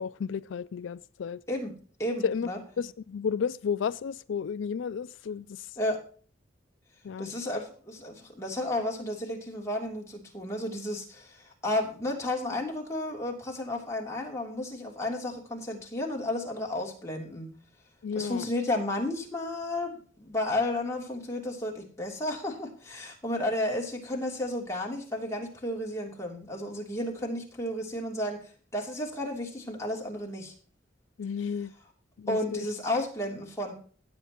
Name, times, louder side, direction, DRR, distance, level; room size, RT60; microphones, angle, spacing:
voice 1, 0.0-1.4 2.2-2.5 2.8-5.8 7.0-7.3 18.0-18.5 31.2-31.7 32.2-32.6, left 6 dB, 80° left, 0.4 m, -32 dB
voice 2, 2.0-2.6 5.8-6.0 7.2-17.5 18.1-28.4 28.7-30.5 32.3-33.7, left 1 dB, 15° left, 3.0 m, -32 dB
17.5 x 8.1 x 2.9 m
head